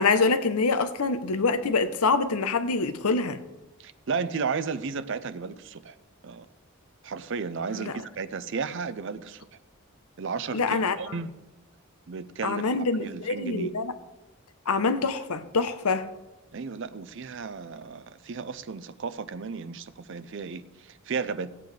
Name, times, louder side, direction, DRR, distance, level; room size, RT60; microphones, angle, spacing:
voice 1, 0.0-3.4 7.7-7.9 10.5-11.2 12.4-13.9 14.7-16.1, left 4 dB, 90° left, 0.8 m, -25 dB
voice 2, 3.8-6.0 6.2-6.5 7.0-9.5 10.2-11.3 12.1-12.7 13.0-13.7 16.5-21.5, right 5 dB, 55° right, 0.5 m, -34 dB
16.0 x 8.4 x 3.3 m
head